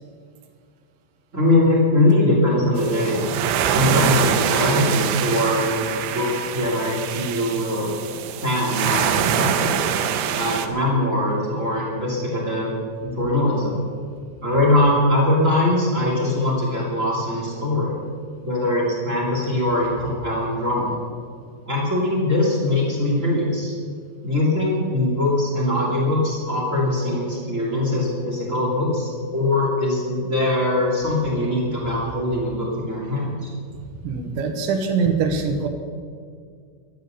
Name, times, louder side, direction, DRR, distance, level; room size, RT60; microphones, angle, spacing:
voice 1, 1.3-3.2 3.6-5.8 6.1-8.1 8.4-9.8 10.3-13.8 14.4-18.0 18.4-21.0 21.6-23.7 24.2-33.5, left 1 dB, 25° right, -3 dB, 1.6 m, -22 dB
sound 1, 2.8-10.7, right 9 dB, 90° right, 3.5 m, -24 dB
voice 2, 34.0-35.7, right 5 dB, 70° right, 5 dB, 3.4 m, -23 dB
13.5 x 12.0 x 6.8 m, 2.1 s
omnidirectional pair, 5.9 m